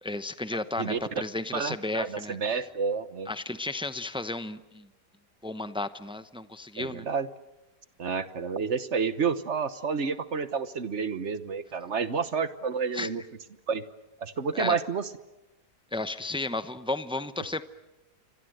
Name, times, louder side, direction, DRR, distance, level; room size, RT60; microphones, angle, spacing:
voice 1, 0.0-2.4 3.3-4.9 5.4-7.1 12.9-13.1 14.5-14.8 15.9-17.6, left 2 dB, 5° right, 11 dB, 0.4 m, -33 dB
voice 2, 0.8-1.2 1.5-3.3 6.8-7.3 8.0-13.2 13.7-13.8 14.2-15.1, right 5 dB, 45° right, 13 dB, 1.3 m, -30 dB
29.0 x 24.5 x 7.8 m, 0.98 s
omnidirectional pair, 1.8 m